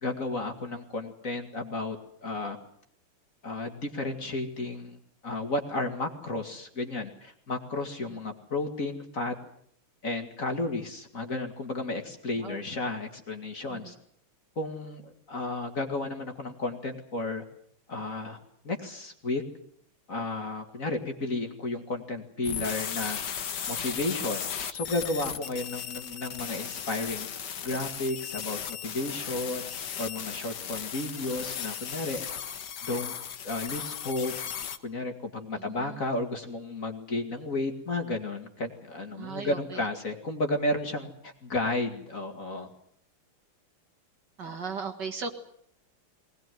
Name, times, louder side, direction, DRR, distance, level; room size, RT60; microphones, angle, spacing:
voice 1, 0.0-2.6 3.4-5.0 5.2-9.3 10.0-13.9 14.6-17.4 17.9-18.4 18.6-19.4 20.1-23.2 23.7-27.3 27.6-29.7 30.0-32.2 32.8-33.1 33.4-34.3 34.8-42.7, left 2 dB, 40° left, 5 dB, 2.5 m, -33 dB
sound 1, 22.4-34.8, left 8 dB, 55° left, 1.7 m, -36 dB
voice 2, 35.6-36.0 39.2-39.8 44.4-45.3, right 5 dB, 55° right, 6 dB, 2.5 m, -37 dB
21.5 x 19.5 x 9.3 m, 0.66 s
omnidirectional pair, 2.4 m